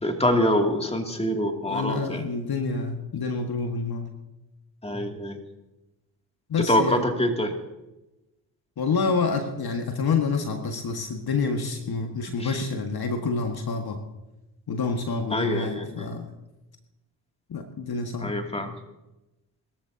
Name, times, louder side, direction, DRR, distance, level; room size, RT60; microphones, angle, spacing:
voice 1, 0.0-2.2 4.8-5.4 6.7-7.5 12.4-12.6 15.3-16.1 18.2-18.7, equal, 10° left, 3 dB, 2.5 m, -25 dB
voice 2, 1.7-4.1 6.5-7.0 8.8-14.0 14.7-16.3 17.5-18.3, left 4 dB, 50° left, 4 dB, 1.7 m, -28 dB
22.0 x 13.5 x 2.8 m, 1.0 s
hypercardioid pair, 45°, 49 cm